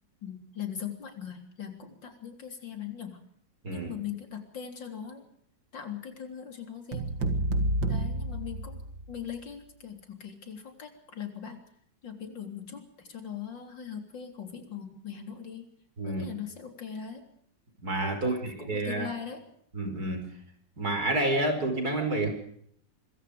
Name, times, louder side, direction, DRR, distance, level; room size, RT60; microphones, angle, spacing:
voice 1, 0.2-3.2 3.7-5.3 5.7-7.1 7.9-8.8 9.1-11.6 12.0-15.7 16.1-17.2 18.1-19.5, left 8 dB, 80° left, 5 dB, 4.2 m, -40 dB
sound 1, 6.9-9.2, right 1 dB, 85° right, 3.0 m, -29 dB
voice 2, 16.0-16.3 17.8-19.1 19.7-20.2 20.8-22.3, right 2 dB, 55° right, 6 dB, 5.6 m, -29 dB
25.5 x 23.0 x 5.1 m, 0.66 s
omnidirectional pair, 2.0 m